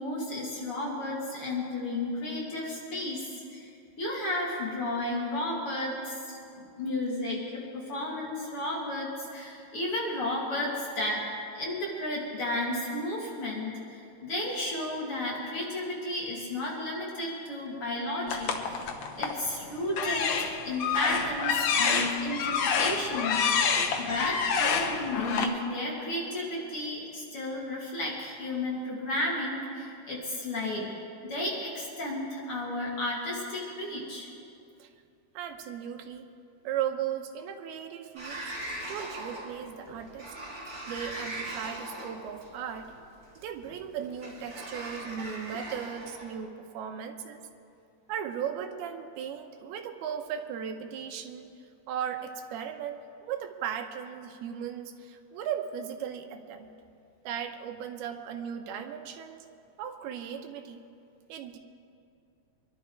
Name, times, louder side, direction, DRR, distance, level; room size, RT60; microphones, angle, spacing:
voice 1, 0.0-3.7 4.0-11.2 11.5-18.8 19.1-30.9 31.2-34.3, left 1 dB, 40° left, -5 dB, 2.7 m, -33 dB
sound 1, 18.3-19.4 19.9-25.4, left 6 dB, 70° left, 1.6 m, -27 dB
voice 2, 35.4-36.3 36.6-38.4 38.9-40.3 40.9-42.9 43.4-47.4 48.1-51.5 51.9-56.7 57.2-59.5 59.8-60.8 61.3-61.6, right 8 dB, 80° right, 5 dB, 2.8 m, -37 dB
Sliding door, 38.2-46.3, right 1 dB, 25° right, 1.5 m, -40 dB
24.0 x 11.5 x 4.7 m, 2.5 s
omnidirectional pair, 4.5 m